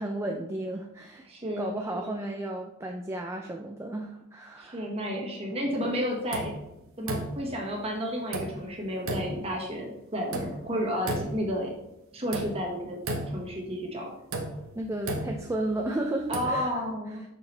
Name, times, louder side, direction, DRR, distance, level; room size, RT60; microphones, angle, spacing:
voice 1, 0.0-1.3 1.6-4.9 5.2-5.3 14.7-16.7, right 1 dB, 10° right, 2 dB, 0.4 m, -33 dB
voice 2, 1.3-2.1 4.6-6.5 7.0-11.7 12.1-13.0 13.3-14.1 16.3-17.2, equal, 30° right, -1 dB, 1.5 m, -32 dB
sound 1, 6.3-6.7 7.1-7.6 8.3-8.7 9.1-9.5 10.3-10.7 11.1-11.6 12.3-12.7 13.1-13.6 14.3-15.8 16.2-16.6, right 2 dB, 70° right, 1.0 m, -33 dB
6.9 x 6.1 x 3.3 m, 0.86 s
head